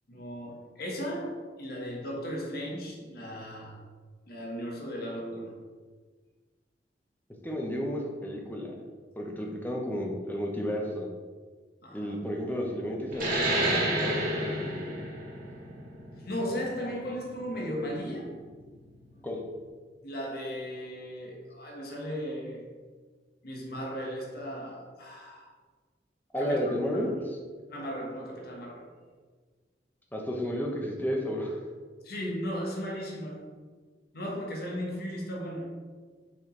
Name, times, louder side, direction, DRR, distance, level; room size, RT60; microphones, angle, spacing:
voice 1, 0.1-3.8 4.3-5.6 11.8-12.2 16.2-18.4 20.0-22.7 23.4-25.5 26.4-26.6 26.9-27.1 27.7-28.9 32.0-33.4 34.1-35.7, equal, 60° left, -2 dB, 1.4 m, -36 dB
voice 2, 7.4-8.7 9.2-11.1 11.9-15.0 19.2-19.4 26.3-27.1 30.1-31.6, equal, 10° left, 0 dB, 0.9 m, -32 dB
sound 1, 13.1-18.3, right 1 dB, 55° right, 1.5 m, -31 dB
6.0 x 5.1 x 3.9 m, 1.4 s
head